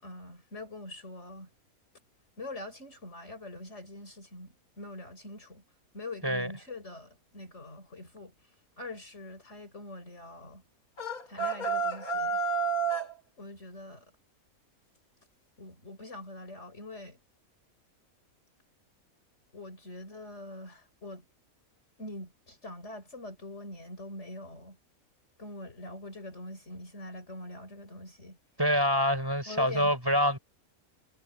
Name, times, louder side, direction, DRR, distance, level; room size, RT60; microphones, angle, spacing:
voice 1, 0.0-1.5 2.4-5.6 5.9-8.3 8.8-10.6 11.3-12.4 13.4-14.1 15.6-17.2 19.5-21.2 22.0-24.8 25.4-28.4 29.5-29.9, left 2 dB, 50° left, 5.3 m, -44 dB
sound 1, 11.0-13.1, right 4 dB, 80° left, 4.8 m, -30 dB
voice 2, 28.6-30.4, equal, 15° right, 6.4 m, -26 dB
omnidirectional pair, 1.5 m